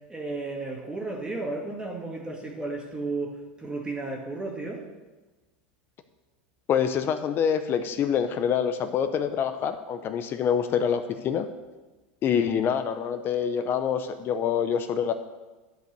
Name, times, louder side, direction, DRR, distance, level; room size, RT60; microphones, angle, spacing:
voice 1, 0.1-4.9, right 3 dB, 15° right, 0 dB, 1.8 m, -33 dB
voice 2, 6.7-11.5 12.2-15.1, left 8 dB, 40° left, 9 dB, 0.7 m, -26 dB
11.5 x 5.3 x 6.6 m, 1.2 s
hypercardioid pair, 100°, 6 cm